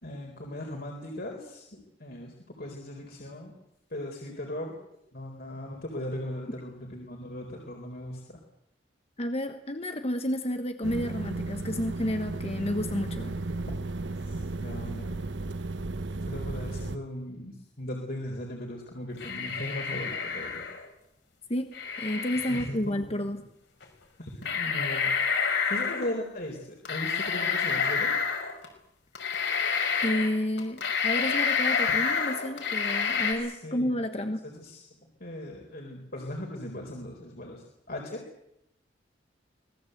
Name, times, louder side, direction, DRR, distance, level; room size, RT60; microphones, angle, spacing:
voice 1, 0.0-3.5 3.9-4.8 5.1-8.4 14.3-15.2 16.3-20.6 22.5-23.0 24.2-25.1 25.6-28.1 33.4-33.9 34.4-34.9 35.2-38.2, left 1 dB, 55° left, 0 dB, 4.2 m, -38 dB
voice 2, 9.2-13.3 21.5-23.4 30.0-34.4, left 1 dB, 35° left, 7 dB, 1.3 m, -31 dB
sound 1, 10.8-17.0, right 2 dB, 75° right, 1.0 m, -34 dB
sound 2, 19.2-20.9 21.7-22.7 23.8-23.9 24.4-26.1 26.9-28.7 29.2-30.3 30.6-33.3, left 6 dB, 70° left, 5.7 m, -28 dB
25.5 x 19.0 x 8.0 m, 0.79 s
head